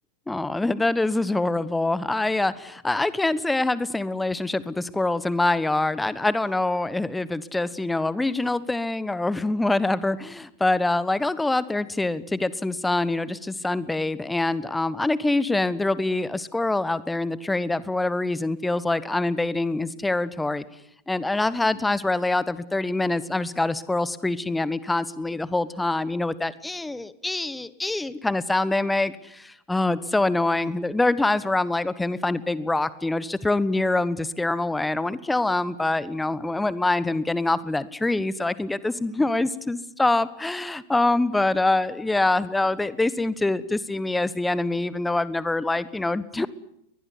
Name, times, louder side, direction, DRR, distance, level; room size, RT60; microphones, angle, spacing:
voice 1, 0.3-20.6 21.1-46.5, left 2 dB, 5° left, 18 dB, 1.2 m, -25 dB
22.5 x 20.5 x 9.9 m, 0.74 s
figure-of-eight pair, 90°, 0 cm